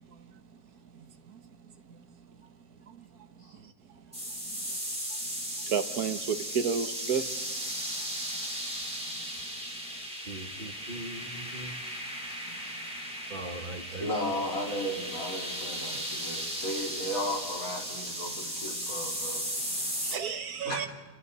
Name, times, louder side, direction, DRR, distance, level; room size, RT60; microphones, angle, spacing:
sound 1, 4.1-20.1, equal, 5° right, 4.3 m, -36 dB
voice 1, 4.5-4.9 9.9-10.0 10.3-11.7 13.3-14.1, right 1 dB, 35° right, 3 dB, 1.6 m, -42 dB
voice 2, 5.7-7.2 20.1-20.9, right 6 dB, 70° right, 9 dB, 1.5 m, -30 dB
voice 3, 13.9-19.4 20.0-20.9, equal, 60° left, -2 dB, 4.0 m, -35 dB
29.5 x 28.0 x 4.1 m, 1.2 s
omnidirectional pair, 1.7 m